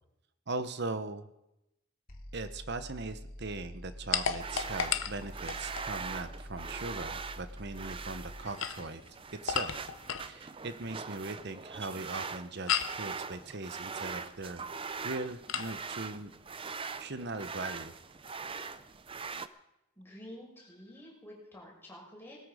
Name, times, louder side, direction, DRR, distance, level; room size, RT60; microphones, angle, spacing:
voice 1, 0.5-1.3 2.3-9.0 9.4-9.7 10.3-14.6 15.0-16.3 17.0-17.9, right 3 dB, 50° right, 11 dB, 1.0 m, -39 dB
sound 1, 2.1-8.5, equal, 40° left, 3.0 m, -46 dB
sound 2, 4.1-5.9 8.4-10.3 12.7-13.0 15.5-15.7, left 8 dB, 60° left, 0.8 m, -34 dB
goats milking in plastic bucket, 4.2-19.5, right 5 dB, 25° right, 0.5 m, -42 dB
voice 2, 20.0-22.4, left 1 dB, 10° left, -3 dB, 5.5 m, -49 dB
19.5 x 13.5 x 5.0 m, 0.90 s
head